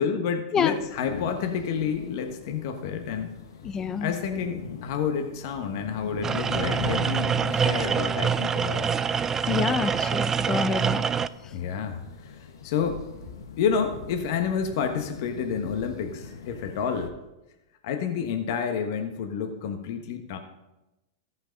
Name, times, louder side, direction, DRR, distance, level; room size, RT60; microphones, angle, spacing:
voice 1, 0.0-3.3 4.0-9.0 11.5-13.0 13.6-17.1 17.8-20.4, left 6 dB, 60° left, 5 dB, 1.3 m, -29 dB
sound 1, 0.7-17.1, left 6 dB, 80° left, 1.1 m, -41 dB
voice 2, 3.6-4.1 9.5-11.0, left 6 dB, 25° left, 12 dB, 0.8 m, -27 dB
sound 2, 6.2-11.3, right 7 dB, 20° right, 0.3 m, -25 dB
14.0 x 5.9 x 5.2 m, 0.98 s
hypercardioid pair, 115°, 2 cm